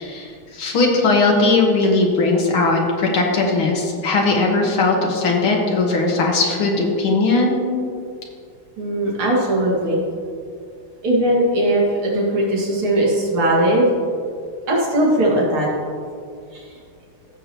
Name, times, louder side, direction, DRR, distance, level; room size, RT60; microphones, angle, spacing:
voice 1, 0.0-7.6, left 3 dB, 80° left, 0 dB, 2.2 m, -18 dB
voice 2, 8.8-10.0 11.0-13.9 14.7-15.7 16.5-16.6, right 1 dB, 90° right, -4 dB, 2.9 m, -19 dB
15.0 x 6.8 x 3.0 m, 2.3 s
omnidirectional pair, 2.3 m